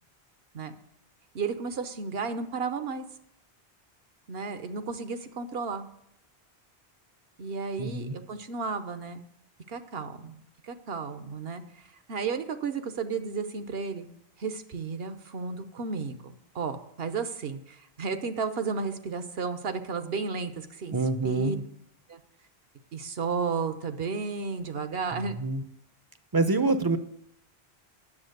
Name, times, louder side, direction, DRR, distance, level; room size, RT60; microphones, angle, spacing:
voice 1, 1.3-3.0 4.3-5.9 7.4-9.2 9.7-10.4 10.7-11.8 12.1-14.1 14.4-21.6 22.9-25.4, right 5 dB, 70° right, 9 dB, 1.1 m, -33 dB
voice 2, 7.8-8.2 20.9-21.6 25.1-25.6 26.3-27.0, right 3 dB, 25° right, 10 dB, 0.6 m, -26 dB
10.0 x 7.2 x 6.6 m, 0.76 s
omnidirectional pair, 1.1 m